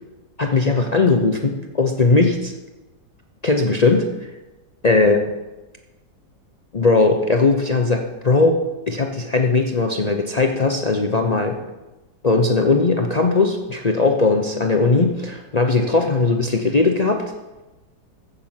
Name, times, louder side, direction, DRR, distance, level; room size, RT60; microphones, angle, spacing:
voice 1, 0.4-2.5 3.4-4.3 4.8-5.2 6.7-11.6 12.2-17.2, left 3 dB, 90° left, 3 dB, 0.3 m, -18 dB
15.0 x 6.8 x 5.8 m, 1.1 s
omnidirectional pair, 2.0 m